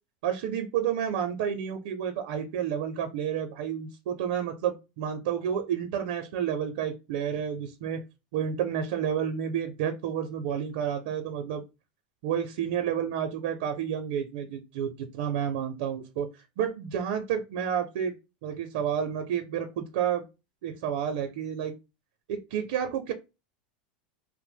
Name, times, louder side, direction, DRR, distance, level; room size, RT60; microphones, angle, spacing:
voice 1, 0.2-8.0 8.3-11.6 12.2-18.1 18.4-20.2 20.6-21.7 22.3-23.1, right 8 dB, 65° right, 6 dB, 0.5 m, -30 dB
2.9 x 2.0 x 3.3 m, 0.26 s
supercardioid pair, 155°, 5 cm